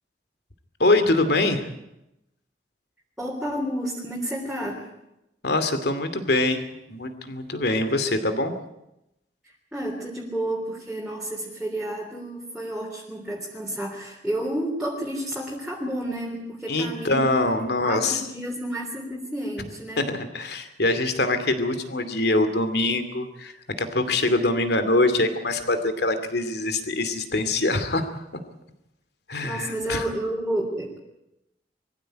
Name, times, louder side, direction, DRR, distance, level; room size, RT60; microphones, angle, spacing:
voice 1, 0.8-1.7 5.4-6.6 6.9-8.5 16.7-18.2 20.0-28.2 29.3-30.0, left 2 dB, 65° left, 9 dB, 2.6 m, -24 dB
voice 2, 3.2-4.9 9.7-17.3 17.8-20.1 29.4-31.0, right 1 dB, 5° right, -3 dB, 3.6 m, -30 dB
23.5 x 15.5 x 9.1 m, 0.87 s
head